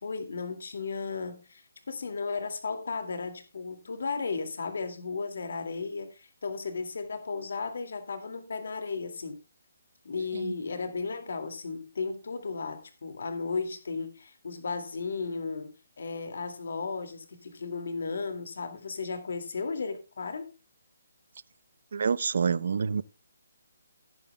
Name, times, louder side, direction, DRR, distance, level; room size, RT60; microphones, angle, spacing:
voice 1, 0.0-9.4 10.0-20.5, left 4 dB, 65° left, 2.2 m, -35 dB
voice 2, 21.9-23.0, right 6 dB, 60° right, 0.6 m, -27 dB
17.0 x 9.0 x 2.2 m
hypercardioid pair, 170°, 0 cm